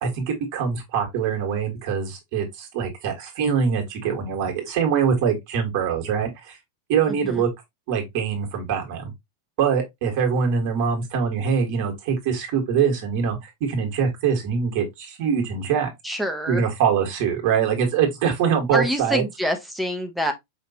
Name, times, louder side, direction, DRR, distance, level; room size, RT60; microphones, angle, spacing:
voice 1, 0.0-6.6 6.9-7.5 7.9-9.1 9.6-15.9 16.5-19.2, right 7 dB, 45° right, 1.6 m, -23 dB
voice 2, 7.1-7.4 16.0-16.6 18.7-20.3, equal, ahead, 1.0 m, -26 dB
5.2 x 2.9 x 2.8 m
figure-of-eight pair, 90°, 0 cm